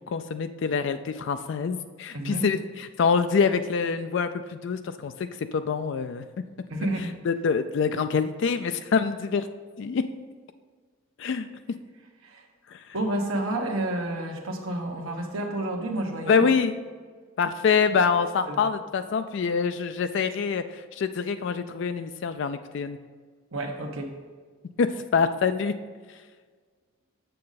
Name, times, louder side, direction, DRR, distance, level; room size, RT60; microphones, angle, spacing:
voice 1, 0.1-6.2 7.3-9.5 9.8-10.0 11.2-11.5 12.7-12.8 16.3-16.7 17.4-23.0 24.8-25.7, left 5 dB, 60° left, 10 dB, 0.3 m, -25 dB
voice 2, 2.1-2.4 6.7-7.2 12.2-12.4 12.9-16.5 18.5-18.8 23.5-24.1, right 1 dB, 85° right, 1 dB, 1.1 m, -30 dB
7.3 x 6.7 x 4.1 m, 1.5 s
head